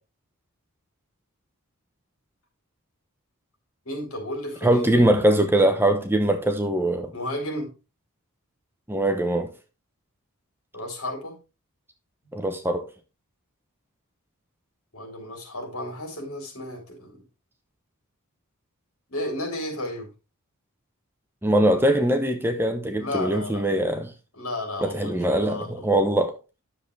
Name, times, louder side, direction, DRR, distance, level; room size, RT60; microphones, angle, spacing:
voice 1, 3.9-5.1 7.1-7.7 10.7-11.4 14.9-17.2 19.1-20.1 23.0-23.7 24.4-25.8, left 1 dB, 65° left, 3.6 m, -33 dB
voice 2, 4.6-7.1 8.9-9.5 12.3-12.9 21.4-24.1 24.8-26.4, right 1 dB, 10° right, 0.9 m, -22 dB
10.0 x 7.1 x 3.3 m
head